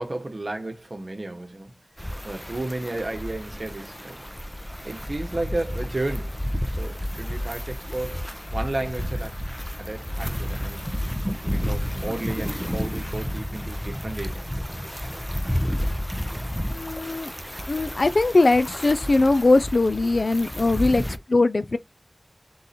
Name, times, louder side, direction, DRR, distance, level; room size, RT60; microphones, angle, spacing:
voice 1, 0.0-1.7 2.2-4.3 4.8-6.4 6.6-8.2 8.5-9.3 9.8-10.9 11.3-14.5 20.7-21.0, right 2 dB, 60° right, 1.0 m, -33 dB
sound 1, 2.0-21.2, equal, 5° left, 0.6 m, -31 dB
voice 2, 16.7-17.3 17.7-21.8, left 2 dB, 75° left, 0.4 m, -20 dB
3.9 x 2.7 x 4.1 m
wide cardioid pair, 55°, 0 cm